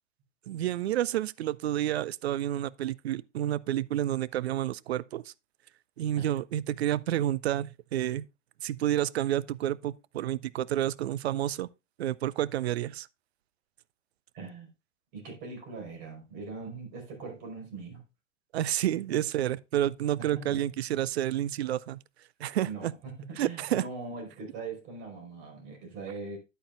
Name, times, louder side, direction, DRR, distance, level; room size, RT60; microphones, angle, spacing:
voice 1, 0.5-5.3 6.0-8.2 8.6-11.7 12.0-13.1 18.5-22.0 22.4-22.9 23.4-23.8, right 12 dB, 55° right, 0.5 m, -30 dB
voice 2, 14.3-14.7 15.1-18.0 19.1-19.2 20.2-20.6 22.6-26.4, right 3 dB, 40° right, 4.8 m, -41 dB
10.5 x 8.8 x 2.5 m
figure-of-eight pair, 105°, 38 cm